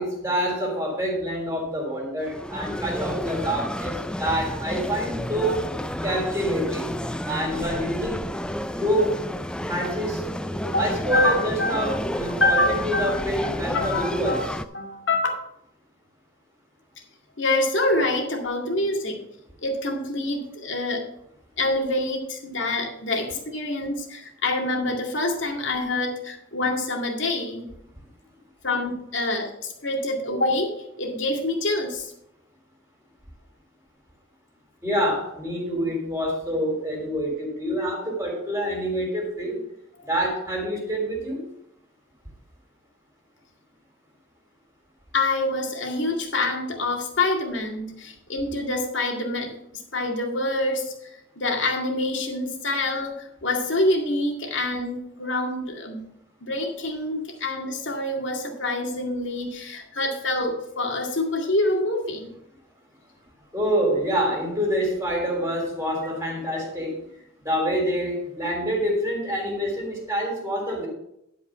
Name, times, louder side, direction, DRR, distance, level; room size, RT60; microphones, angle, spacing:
voice 1, 0.0-5.7 6.0-6.9 7.2-8.3 8.8-9.2 9.7-10.2 10.8-14.4 34.8-39.6 40.0-41.5 63.5-67.0 67.4-70.9, equal, 15° right, 0 dB, 3.4 m, -26 dB
sound 1, 2.2-14.6, left 1 dB, 5° left, 0.3 m, -31 dB
voice 2, 10.6-13.1 13.7-14.4 14.7-15.4 17.4-19.2 19.6-21.1 21.6-27.7 28.6-32.1 45.1-49.6 49.9-56.1 56.4-62.3, left 2 dB, 70° left, 1 dB, 2.1 m, -26 dB
11.5 x 5.1 x 5.6 m, 0.78 s
head